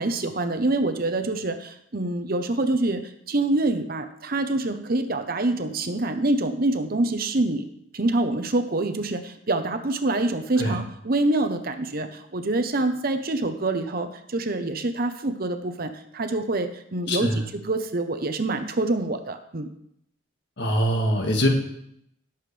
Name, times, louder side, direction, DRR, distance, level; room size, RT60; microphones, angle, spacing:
voice 1, 0.0-3.0 3.3-7.6 7.9-19.7, right 2 dB, 45° right, 8 dB, 0.8 m, -26 dB
voice 2, 17.1-17.4 20.6-21.5, equal, 55° left, 2 dB, 1.8 m, -23 dB
17.0 x 7.3 x 3.3 m, 0.74 s
head